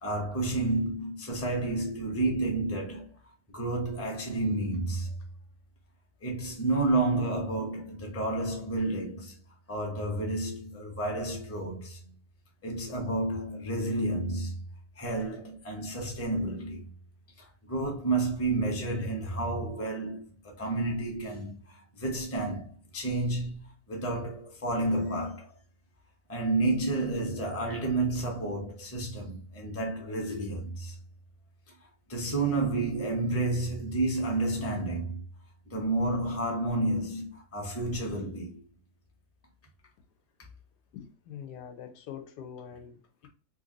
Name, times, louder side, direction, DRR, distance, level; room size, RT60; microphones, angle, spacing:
voice 1, 0.0-3.1 3.5-5.1 6.2-9.4 9.7-12.1 12.6-14.6 15.0-16.9 17.4-25.5 26.3-31.0 31.8-35.2 35.7-38.6, right 2 dB, 15° left, 0.6 m, -30 dB
voice 2, 40.9-43.3, left 8 dB, 90° left, 1.3 m, -44 dB
3.2 x 2.6 x 3.7 m
omnidirectional pair, 1.8 m